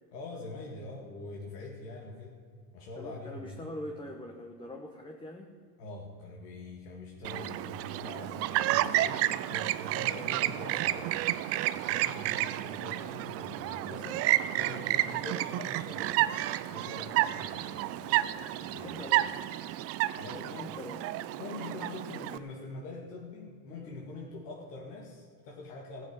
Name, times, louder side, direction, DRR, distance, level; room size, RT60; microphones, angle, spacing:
voice 1, 0.1-2.3 2.7-3.6 5.8-11.2 11.7-16.2 16.6-19.0 20.2-20.7 21.4-26.1, left 2 dB, 80° left, -1 dB, 2.5 m, -44 dB
voice 2, 3.0-5.5 18.7-19.4 20.3-21.2 21.8-22.2, left 1 dB, 10° left, 2 dB, 1.1 m, -43 dB
Chirp tweet, 7.2-22.4, right 15 dB, 35° right, 0.4 m, -31 dB
14.5 x 7.5 x 9.3 m, 2.1 s
supercardioid pair, 125°, 47 cm